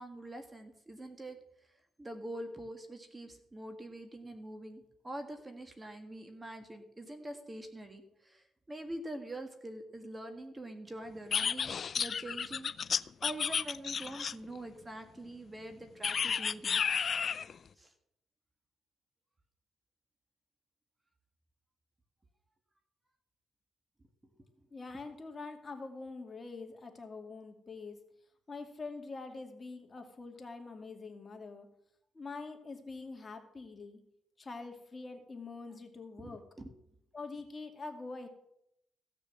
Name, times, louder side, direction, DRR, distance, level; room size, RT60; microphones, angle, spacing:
voice 1, 0.0-1.4 1.7-16.8 17.8-17.9 36.2-36.7, right 1 dB, 20° right, 6 dB, 1.7 m, -45 dB
sound 1, 11.3-14.6 16.0-17.5, left 6 dB, 50° left, 0.4 m, -32 dB
voice 2, 24.7-28.0 28.5-31.7 32.1-34.0 34.4-36.4 37.1-38.3, left 3 dB, 30° left, 3 dB, 2.3 m, -45 dB
15.5 x 6.8 x 7.3 m, 0.77 s
cardioid pair, 90°, 0 cm